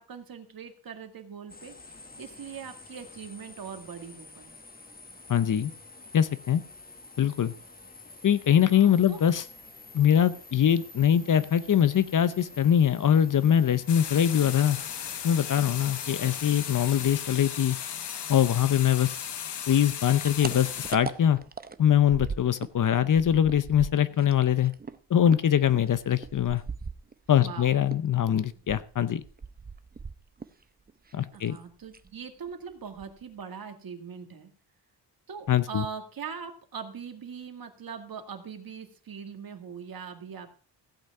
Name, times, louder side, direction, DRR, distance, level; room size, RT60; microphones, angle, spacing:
voice 1, 0.0-4.5 8.7-9.2 27.4-27.7 31.3-34.5 35.3-40.5, right 6 dB, 55° right, 6 dB, 1.9 m, -41 dB
sound 1, 1.5-17.2, left 3 dB, 20° left, 1.4 m, -48 dB
voice 2, 5.3-5.7 6.1-6.6 7.2-7.5 8.2-9.4 9.9-14.8 15.2-17.8 18.3-19.1 19.7-21.4 21.8-24.7 25.1-26.6 27.3-29.2 31.1-31.6 35.5-35.8, left 9 dB, 45° left, 14 dB, 0.7 m, -23 dB
sound 2, 13.9-20.9, left 8 dB, 70° left, 1.3 m, -36 dB
sound 3, 19.8-22.8 23.1-27.5 27.9-30.6 30.9-31.6 31.9-32.1 32.5-32.6 32.9-33.4, right 5 dB, 20° right, 0.6 m, -40 dB
16.0 x 8.1 x 4.8 m, 0.42 s
wide cardioid pair, 135°, 43 cm